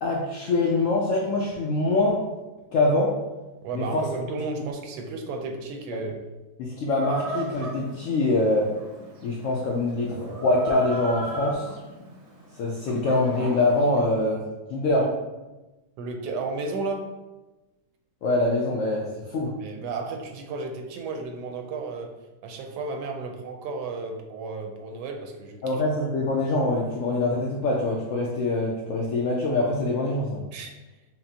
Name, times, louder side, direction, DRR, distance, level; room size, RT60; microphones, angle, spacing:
voice 1, 0.0-2.2 2.7-3.1 3.7-4.1 4.5-4.7 5.9-6.0 6.6-8.7 9.2-11.7 12.6-14.4 14.7-15.0 18.2-19.5 25.6-30.4, left 2 dB, 75° left, -2 dB, 0.7 m, -24 dB
voice 2, 3.6-6.2 15.0-15.1 16.0-17.1 19.6-22.1 22.4-25.8 30.5-30.7, right 3 dB, 80° right, 3 dB, 1.2 m, -33 dB
Chicken rooster, 7.0-14.0, right 2 dB, 55° right, 0.8 m, -37 dB
5.7 x 2.0 x 2.7 m, 1.1 s
omnidirectional pair, 1.8 m